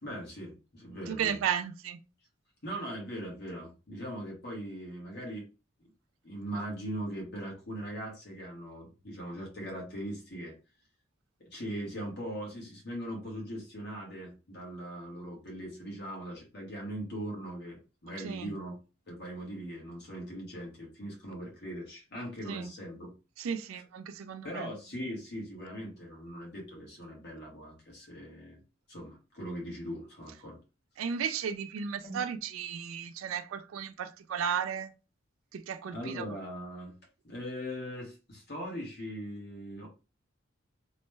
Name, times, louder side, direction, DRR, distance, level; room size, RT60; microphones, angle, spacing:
voice 1, 0.0-1.4 2.6-5.5 6.2-10.6 11.5-18.8 19.1-23.1 24.4-28.6 28.9-30.6 31.0-31.1 32.0-32.2 35.9-36.9 37.2-39.9, equal, 55° left, 1.2 m, -40 dB
voice 2, 1.1-2.0 18.2-18.5 22.5-22.7 23.4-24.7 31.0-34.9 35.5-36.2, right 7 dB, 85° right, 0.3 m, -34 dB
3.0 x 2.1 x 3.2 m
head